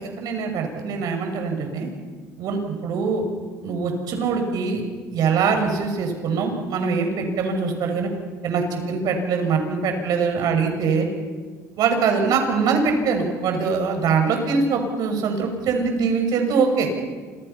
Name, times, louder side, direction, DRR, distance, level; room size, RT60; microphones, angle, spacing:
voice 1, 0.0-1.9 2.4-3.2 3.6-4.8 5.1-8.1 8.4-11.1 11.8-16.9, right 5 dB, 65° right, 4 dB, 6.8 m, -23 dB
28.5 x 27.0 x 5.9 m, 1.5 s
supercardioid pair, 90°, 7 cm